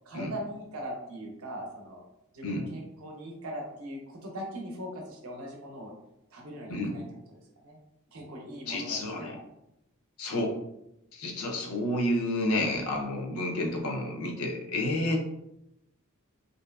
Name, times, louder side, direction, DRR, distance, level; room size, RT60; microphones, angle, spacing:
voice 1, 0.1-2.0 2.3-5.9 6.3-7.0 7.6-7.8 8.1-9.4, equal, 75° right, 0 dB, 0.6 m, -40 dB
voice 2, 8.7-9.3 10.2-10.6 11.1-15.2, left 1 dB, 85° left, 2 dB, 0.5 m, -30 dB
2.6 x 2.2 x 2.2 m, 0.84 s
head